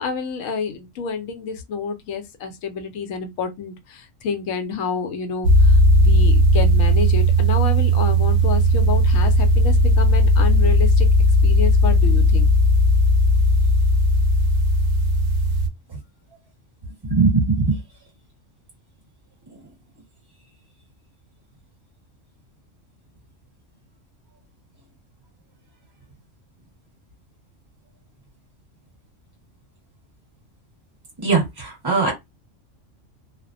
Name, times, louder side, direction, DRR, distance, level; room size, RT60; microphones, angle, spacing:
voice 1, 0.0-11.1 11.4-12.5, left 5 dB, 80° left, 1.0 m, -29 dB
sound 1, 5.4-15.7, equal, 60° right, 0.6 m, -16 dB
voice 2, 17.1-17.8 31.2-32.1, right 4 dB, 20° right, 1.1 m, -19 dB
2.4 x 2.1 x 2.5 m
omnidirectional pair, 1.3 m